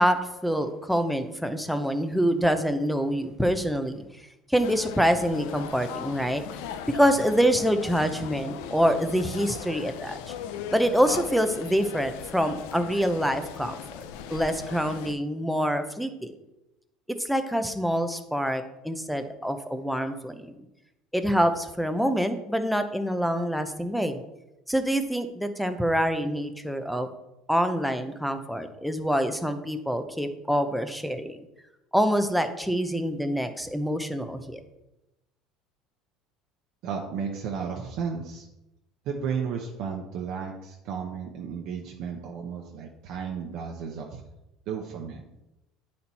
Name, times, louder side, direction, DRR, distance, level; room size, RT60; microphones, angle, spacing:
voice 1, 0.0-4.0 4.5-6.4 6.9-10.3 10.7-13.8 14.3-16.3 17.2-20.5 21.1-24.2 24.7-27.1 27.5-31.4 31.9-34.6, equal, ahead, 7 dB, 0.6 m, -26 dB
sound 1, 4.6-15.1, left 8 dB, 85° left, 0.5 m, -39 dB
voice 2, 36.8-38.5 39.1-44.2 44.7-45.2, right 6 dB, 55° right, 0 dB, 0.9 m, -33 dB
9.3 x 4.3 x 4.1 m, 0.92 s
cardioid pair, 140°, 0 cm